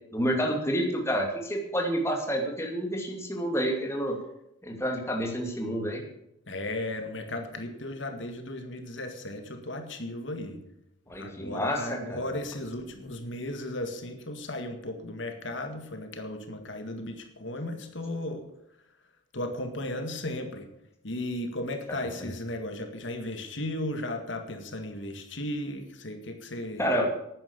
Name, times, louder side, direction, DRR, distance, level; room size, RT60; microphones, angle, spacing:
voice 1, 0.1-4.2 4.6-6.0 11.1-12.2 26.8-27.1, equal, 15° left, 2 dB, 2.4 m, -29 dB
voice 2, 6.5-10.6 11.2-18.5 19.3-20.7 21.0-26.9, left 1 dB, 65° left, 6 dB, 1.8 m, -35 dB
12.0 x 9.6 x 7.0 m, 0.81 s
head